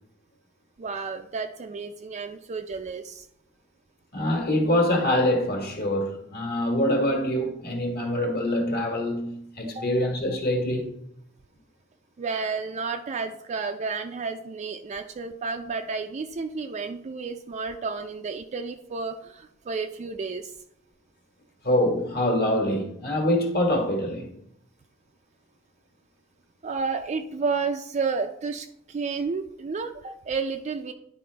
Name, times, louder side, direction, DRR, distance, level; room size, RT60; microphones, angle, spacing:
voice 1, 0.8-3.3 9.7-9.8 12.2-20.5 26.6-30.9, right 4 dB, 35° right, 0.4 m, -31 dB
voice 2, 4.1-10.9 21.6-24.3, left 1 dB, 50° left, 1.4 m, -25 dB
10.5 x 4.2 x 3.3 m
head